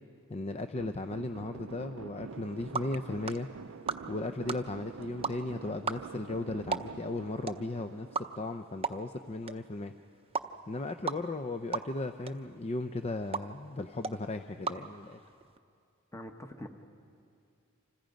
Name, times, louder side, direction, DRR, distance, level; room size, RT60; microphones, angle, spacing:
voice 1, 0.3-3.5 4.1-9.9 10.7-15.2, left 2 dB, 30° left, 8 dB, 0.5 m, -36 dB
sound 1, 0.8-9.1, right 5 dB, 70° right, 0.5 m, -47 dB
sound 2, 2.3-15.6, right 5 dB, 30° right, 0.7 m, -40 dB
voice 2, 16.1-16.7, left 1 dB, 15° left, 5 dB, 1.1 m, -43 dB
29.0 x 26.5 x 5.2 m, 2.4 s
head